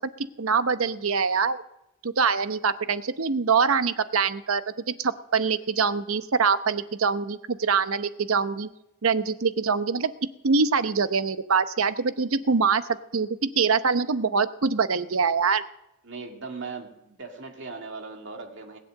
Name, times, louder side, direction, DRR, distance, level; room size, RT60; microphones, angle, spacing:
voice 1, 0.4-1.6 2.0-4.6 5.0-8.7 9.0-10.1 10.4-12.8 13.1-13.3 13.6-15.6, right 5 dB, 80° right, 12 dB, 0.8 m, -24 dB
voice 2, 16.0-18.8, right 4 dB, 60° right, 3 dB, 2.3 m, -38 dB
20.5 x 7.6 x 7.7 m, 0.86 s
head